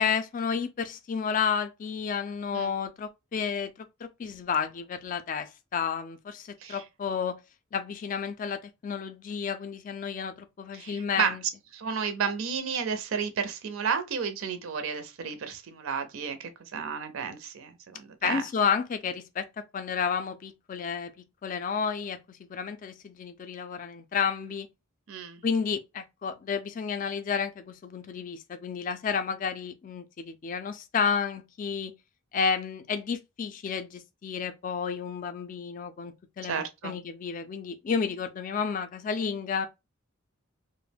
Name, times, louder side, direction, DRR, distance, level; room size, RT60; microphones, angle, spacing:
voice 1, 0.0-7.4 7.7-11.4 18.2-19.5 19.7-21.1 21.4-24.7 25.4-31.9 32.3-39.7, left 6 dB, 40° left, 0.3 m, -31 dB
voice 2, 10.7-11.3 11.7-18.4 25.1-25.4 36.4-36.9, right 6 dB, 75° right, 0.4 m, -32 dB
2.3 x 2.0 x 3.3 m
head